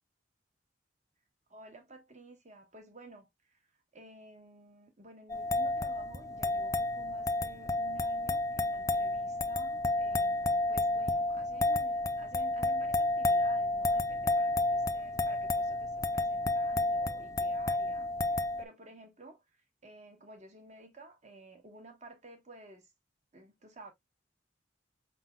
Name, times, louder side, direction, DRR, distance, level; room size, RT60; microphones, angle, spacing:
voice 1, 1.5-3.6 3.9-22.9 23.3-23.9, right 2 dB, 40° right, 1.4 m, -53 dB
sound 1, 5.3-18.6, left 2 dB, 20° left, 0.4 m, -31 dB
5.0 x 3.8 x 2.4 m
head